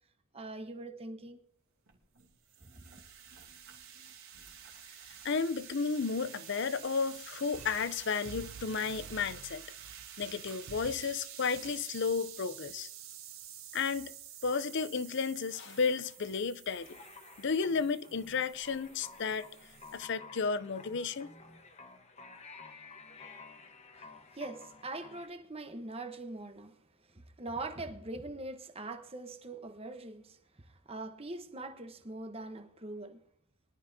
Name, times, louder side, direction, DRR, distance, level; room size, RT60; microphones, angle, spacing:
voice 1, 0.3-1.4 2.8-2.9 24.0-26.8 27.1-33.2, right 2 dB, 25° right, 1.0 m, -42 dB
sound 1, 1.9-20.1, right 9 dB, 65° right, 2.7 m, -50 dB
voice 2, 5.2-9.6 10.2-12.9 13.7-14.1 14.4-17.0 17.4-19.5 19.9-21.3, left 5 dB, 55° left, 0.5 m, -33 dB
sound 2, 7.5-8.0 8.2-11.2 11.5-11.8, right 5 dB, 85° right, 0.6 m, -50 dB
sound 3, 16.7-25.3, left 4 dB, 30° left, 1.1 m, -53 dB
22.0 x 12.0 x 2.7 m
head